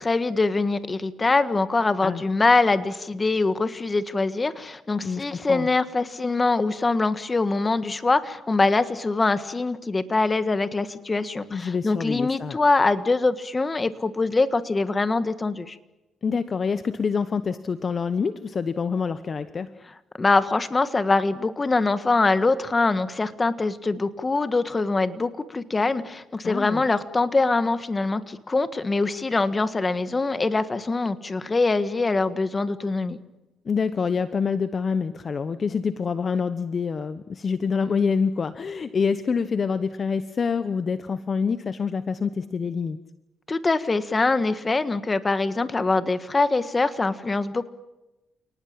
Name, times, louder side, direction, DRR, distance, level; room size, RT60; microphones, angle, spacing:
voice 1, 0.0-15.8 20.2-33.2 43.5-47.7, left 3 dB, 25° left, 12 dB, 1.6 m, -23 dB
voice 2, 5.0-5.7 11.5-12.6 16.2-19.7 26.4-26.8 33.6-43.0, left 5 dB, 40° left, 12 dB, 1.0 m, -26 dB
29.0 x 19.0 x 8.8 m, 1.0 s
cardioid pair, 90°, 0 cm